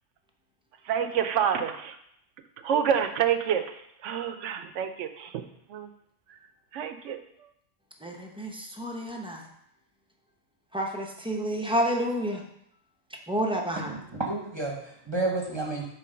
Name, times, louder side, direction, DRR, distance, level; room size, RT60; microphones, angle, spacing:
voice 1, 0.9-2.0 2.6-3.6 4.0-5.4 5.7-5.9 6.7-7.2, right 8 dB, 75° right, 8 dB, 0.9 m, -27 dB
voice 2, 8.0-9.4 10.7-12.4 13.3-13.9, equal, 5° right, 1 dB, 0.5 m, -29 dB
voice 3, 13.7-15.9, right 2 dB, 25° right, -1 dB, 0.8 m, -31 dB
7.7 x 3.4 x 5.1 m, 0.74 s
omnidirectional pair, 1.3 m